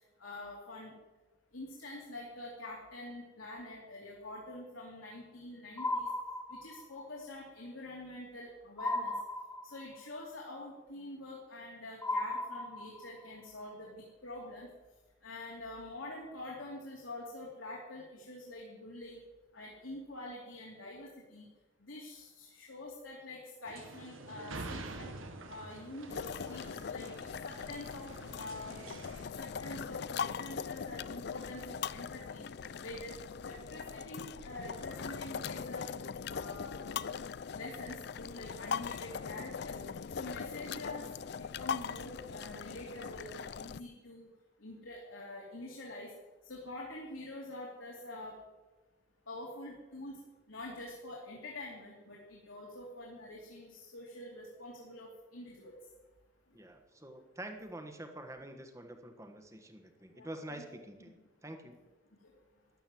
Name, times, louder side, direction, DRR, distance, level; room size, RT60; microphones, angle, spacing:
voice 1, 0.2-1.0 1.5-6.1 6.5-9.1 9.7-14.7 15.2-19.2 19.5-21.5 21.8-25.1 25.5-27.1 27.4-28.1 28.3-28.9 29.4-32.4 32.8-33.1 33.4-35.9 36.3-37.0 37.5-39.8 40.1-44.3 44.6-46.1 46.5-48.3 49.3-50.2 50.5-55.7 60.1-60.6, left 1 dB, 75° left, -2 dB, 2.8 m, -46 dB
sound 1, 5.8-7.0 8.8-10.0 12.0-13.3, left 1 dB, 10° left, 1.0 m, -36 dB
sound 2, 23.6-29.2, right 2 dB, 80° right, 1.6 m, -47 dB
sound 3, 26.1-43.8, left 6 dB, 55° left, 0.4 m, -41 dB
voice 2, 56.5-61.8, right 1 dB, 15° right, 6 dB, 1.4 m, -47 dB
13.0 x 11.5 x 7.6 m, 1.2 s
head